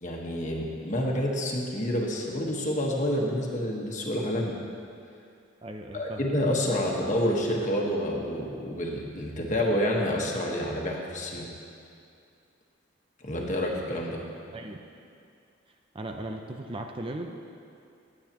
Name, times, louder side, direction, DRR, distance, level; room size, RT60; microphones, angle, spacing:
voice 1, 0.0-4.6 5.9-11.5 13.2-14.2, equal, 40° left, -1 dB, 1.4 m, -28 dB
voice 2, 5.6-6.3 14.5-14.8 15.9-17.3, right 1 dB, 30° right, 3 dB, 0.5 m, -37 dB
19.0 x 8.8 x 3.0 m, 2.5 s
head